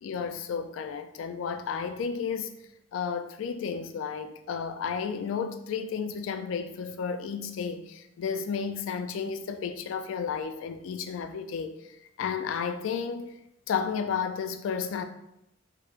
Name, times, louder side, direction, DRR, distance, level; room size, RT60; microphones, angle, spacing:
voice 1, 0.0-2.5 2.9-11.8 12.2-13.3 13.7-15.0, left 6 dB, 85° left, 0.3 m, -32 dB
4.3 x 2.1 x 2.4 m
head